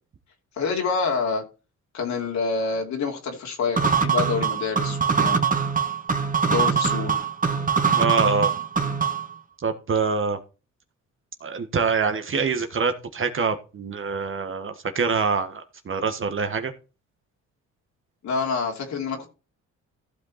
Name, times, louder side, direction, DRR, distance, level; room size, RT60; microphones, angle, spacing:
voice 1, 0.6-1.4 1.9-5.4 6.4-7.3 18.2-19.3, left 5 dB, 65° left, 2.9 m, -27 dB
sound 1, 3.8-9.3, right 6 dB, 25° right, 1.8 m, -23 dB
voice 2, 8.0-8.5 9.6-10.4 11.4-16.7, right 5 dB, 45° right, 1.5 m, -25 dB
15.0 x 5.4 x 4.3 m
cardioid pair, 90°, 30 cm